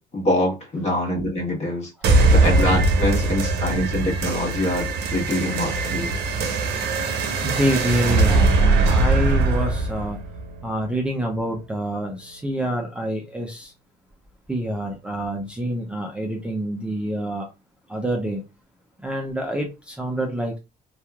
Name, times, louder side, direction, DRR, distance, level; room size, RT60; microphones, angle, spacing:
voice 1, 0.1-1.9 2.3-6.1, left 1 dB, 40° left, 1.3 m, -24 dB
sound 1, 2.0-11.0, right 3 dB, 80° right, 0.7 m, -21 dB
voice 2, 7.4-10.2 10.6-13.7 14.5-17.5 17.9-18.4 19.0-20.6, right 1 dB, 5° right, 0.5 m, -27 dB
2.8 x 2.3 x 2.3 m
cardioid pair, 110°, 17 cm